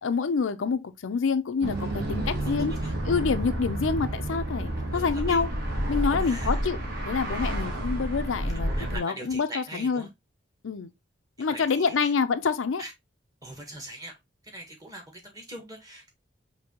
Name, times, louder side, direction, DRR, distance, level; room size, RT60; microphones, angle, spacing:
voice 1, 0.0-2.7 3.1-5.5 5.9-6.8 7.0-10.1 10.6-10.9 11.4-12.8, left 5 dB, 85° left, 0.5 m, -27 dB
sound 1, 1.6-9.0, right 1 dB, 50° right, 1.2 m, -30 dB
voice 2, 2.4-2.9 4.9-5.4 6.2-6.6 8.5-10.1 11.4-12.1 12.8-12.9 13.4-14.1 14.5-16.1, right 1 dB, 20° right, 1.3 m, -42 dB
5.3 x 2.8 x 2.8 m
head